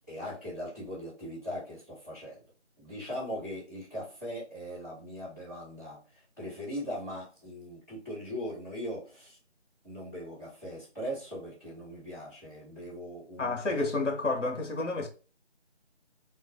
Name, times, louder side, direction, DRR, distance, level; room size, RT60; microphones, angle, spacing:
voice 1, 0.1-2.4 2.8-6.0 6.4-9.4 9.8-13.7, equal, 15° left, 1.2 m, -40 dB
voice 2, 13.4-15.1, left 3 dB, 90° left, 0.7 m, -30 dB
2.2 x 2.1 x 2.6 m
figure-of-eight pair, 170°, 35 cm